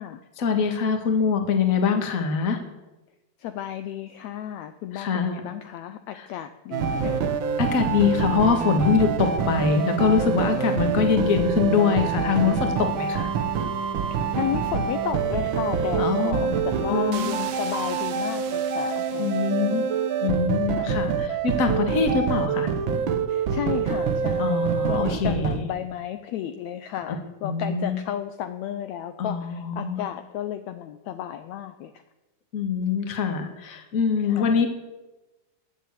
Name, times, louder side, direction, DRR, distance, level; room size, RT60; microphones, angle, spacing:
voice 1, 0.4-2.6 4.9-5.4 6.1-6.2 7.6-13.3 16.0-16.5 16.9-17.4 19.2-19.8 20.2-22.7 24.4-25.6 27.1-27.2 27.4-28.0 29.2-30.0 32.5-34.7, left 5 dB, 35° left, 5 dB, 1.6 m, -24 dB
voice 2, 3.4-7.3 14.3-19.9 20.7-21.1 23.3-31.9 34.2-34.7, left 11 dB, 75° left, 9 dB, 1.8 m, -33 dB
sound 1, 6.7-25.6, right 6 dB, 80° right, 1.1 m, -26 dB
18.0 x 7.5 x 8.5 m, 1.1 s
omnidirectional pair, 3.7 m